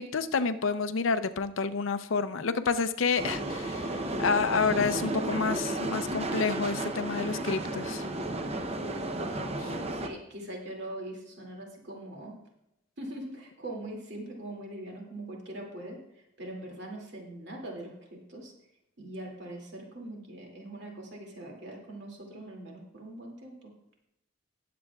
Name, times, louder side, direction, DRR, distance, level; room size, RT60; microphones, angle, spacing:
voice 1, 0.0-8.0, left 5 dB, 80° left, 11 dB, 0.6 m, -29 dB
sound 1, 3.2-10.1, right 2 dB, 30° right, 0.7 m, -33 dB
voice 2, 9.1-12.3 13.0-16.0 16.4-18.5 19.0-23.7, right 1 dB, 60° right, 0 dB, 2.5 m, -42 dB
19.5 x 7.7 x 2.4 m, 0.85 s
head